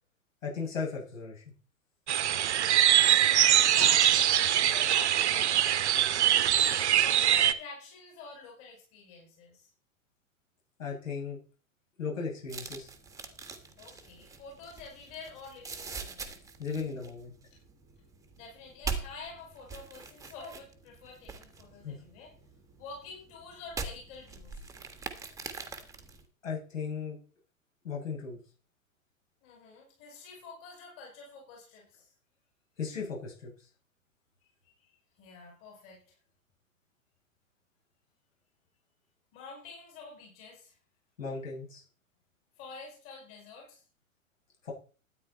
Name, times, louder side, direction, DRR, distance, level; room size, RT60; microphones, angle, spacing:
voice 1, 0.4-1.4 10.8-11.4 12.0-12.9 13.9-14.0 16.6-17.3 21.8-21.9 26.4-27.2 27.8-28.4 32.8-33.5 41.2-41.8 44.6-44.7, left 5 dB, 65° left, -3 dB, 7.5 m, -36 dB
sound 1, 2.1-7.5, right 11 dB, 55° right, 1.2 m, -23 dB
voice 2, 2.6-3.2 3.7-6.2 7.0-9.6 13.8-16.4 17.5-17.6 18.3-22.3 22.8-24.7 29.4-32.1 34.8-34.9 35.2-36.0 39.3-40.7 42.6-43.8, left 4 dB, 30° left, -1 dB, 6.1 m, -48 dB
sound 2, 12.5-26.2, right 4 dB, 10° right, 1.5 m, -43 dB
13.0 x 9.7 x 4.2 m, 0.39 s
figure-of-eight pair, 105°, 41 cm